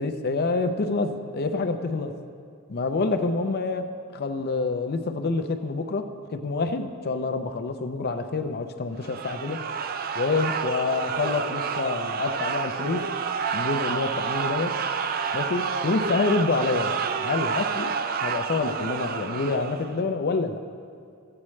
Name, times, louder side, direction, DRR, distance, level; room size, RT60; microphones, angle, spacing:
voice 1, 0.0-2.1 2.7-9.6 10.2-13.0 13.5-14.7 15.3-20.6, left 3 dB, 45° left, 7 dB, 0.5 m, -27 dB
sound 1, 9.0-20.0, right 6 dB, 40° right, 0.4 m, -29 dB
14.5 x 8.6 x 3.2 m, 2.3 s
head